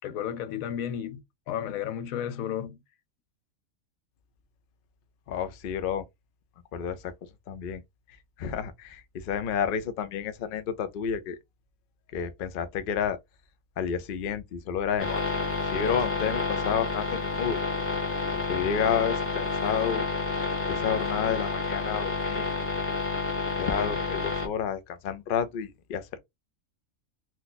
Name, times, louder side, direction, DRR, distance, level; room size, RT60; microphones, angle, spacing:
voice 1, 0.0-2.8, left 9 dB, 85° left, 1.0 m, -33 dB
voice 2, 5.3-6.0 6.7-7.1 7.5-7.8 8.4-11.4 12.1-13.2 13.8-15.2 15.7-17.6 18.3-20.0 20.7-22.7 23.6-26.2, left 7 dB, 60° left, 0.6 m, -30 dB
sound 1, 15.0-24.5, left 3 dB, 10° left, 0.9 m, -29 dB
2.8 x 2.2 x 3.9 m
omnidirectional pair, 1.4 m